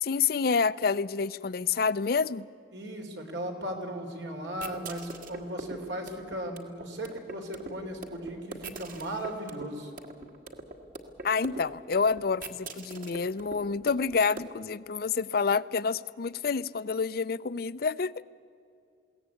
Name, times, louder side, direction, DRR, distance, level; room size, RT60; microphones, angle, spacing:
voice 1, 0.0-2.5 11.2-18.1, left 5 dB, 55° left, 16 dB, 0.5 m, -28 dB
voice 2, 2.7-9.9, right 1 dB, 80° right, 3 dB, 3.4 m, -37 dB
sound 1, 4.5-14.4, right 2 dB, 50° right, 1.6 m, -44 dB
22.0 x 17.5 x 8.4 m, 2.4 s
head